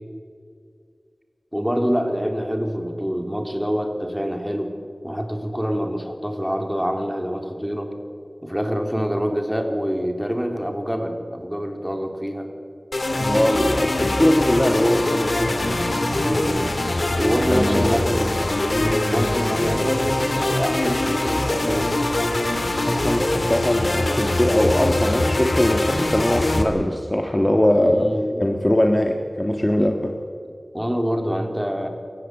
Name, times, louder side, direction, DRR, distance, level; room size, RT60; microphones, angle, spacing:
voice 1, 1.5-4.7 5.0-7.9 8.4-12.5 16.2-16.7 17.2-18.3 18.7-21.9 27.8-28.5 29.8-29.9 30.7-31.9, equal, 5° right, 4 dB, 3.4 m, -26 dB
sound 1, 12.9-26.6, left 1 dB, 60° left, 2.7 m, -23 dB
voice 2, 13.2-16.1 17.5-18.0 22.9-28.1 28.4-30.2, left 1 dB, 20° left, 4 dB, 1.7 m, -21 dB
28.0 x 15.5 x 8.3 m, 2.4 s
wide cardioid pair, 55°, 0 cm